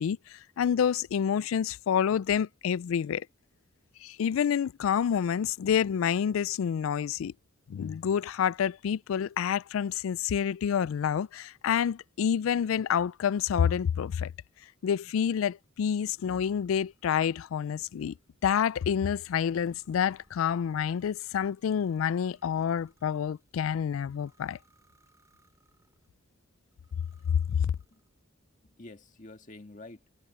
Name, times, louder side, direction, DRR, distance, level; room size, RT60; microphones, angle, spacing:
voice 1, 0.0-3.3 4.0-7.3 7.7-14.3 14.8-18.1 18.4-24.6 27.3-27.7, left 8 dB, 85° left, 0.3 m, -28 dB
sound 1, 15.8-26.1 26.7-28.3, right 2 dB, 15° right, 7.4 m, -69 dB
voice 2, 27.2-28.0 28.6-30.0, left 2 dB, 40° left, 1.8 m, -49 dB
head